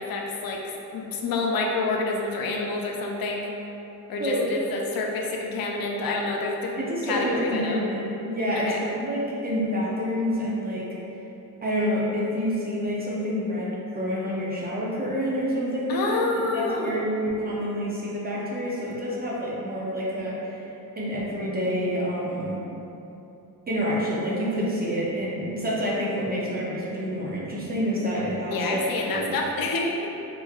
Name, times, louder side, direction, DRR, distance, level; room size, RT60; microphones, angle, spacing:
voice 1, 0.0-3.5 4.1-7.8 8.5-8.8 15.9-17.0 28.5-30.1, left 3 dB, 70° left, 0 dB, 0.5 m, -28 dB
voice 2, 6.8-10.8 11.6-16.2 16.5-20.6 21.0-22.6 23.7-29.3, equal, 25° right, -6 dB, 0.5 m, -28 dB
3.4 x 3.1 x 2.3 m, 3.0 s
wide cardioid pair, 150°, 37 cm